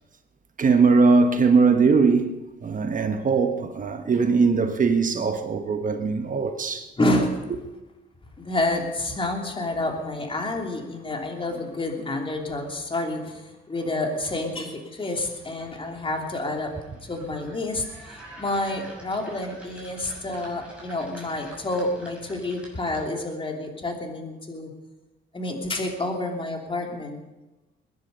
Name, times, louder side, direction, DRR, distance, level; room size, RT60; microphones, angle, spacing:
voice 1, 0.6-6.9, right 4 dB, 40° right, 1.3 m, -20 dB
voice 2, 7.0-7.4 8.4-24.7 25.3-27.2, left 2 dB, 25° left, 3.1 m, -29 dB
sound 1, 15.6-23.3, right 2 dB, 5° right, 6.2 m, -46 dB
21.0 x 10.5 x 5.4 m
cardioid pair, 90°, 20 cm